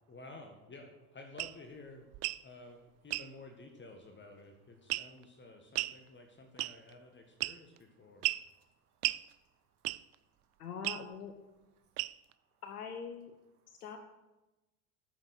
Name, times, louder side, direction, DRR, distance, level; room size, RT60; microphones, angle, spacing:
voice 1, 0.1-2.1 2.4-8.4, left 2 dB, 25° left, 4 dB, 1.8 m, -52 dB
sound 1, 1.4-1.6 2.1-2.4 3.1-3.3 4.9-5.2 5.7-6.0 6.6-6.9 7.4-7.8 8.2-8.5 9.0-9.2 9.8-10.1 10.8-11.0 12.0-12.3, right 18 dB, 40° right, 0.4 m, -34 dB
voice 2, 2.3-2.7 4.5-10.7 11.7-12.6 13.6-13.8, right 5 dB, 90° right, 4 dB, 1.9 m, -78 dB
voice 3, 10.6-11.3 12.6-13.3 13.8-14.0, left 6 dB, 85° left, 6 dB, 1.2 m, -43 dB
12.0 x 7.0 x 6.6 m, 1.0 s
hypercardioid pair, 75°, 44 cm